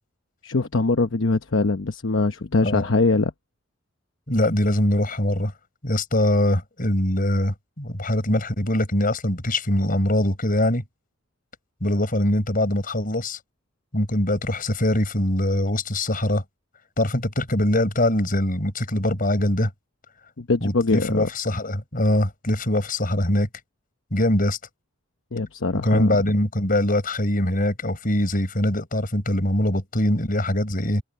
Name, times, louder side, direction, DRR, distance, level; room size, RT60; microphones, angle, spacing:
voice 1, 0.4-3.3 20.4-21.3 25.3-26.1, left 3 dB, 75° left, 0.9 m, -22 dB
voice 2, 4.3-5.5 5.8-10.8 11.8-13.4 13.9-16.4 17.0-19.7 20.6-23.5 24.1-24.6 25.8-31.0, left 1 dB, 45° left, 5.7 m, -22 dB
open air
head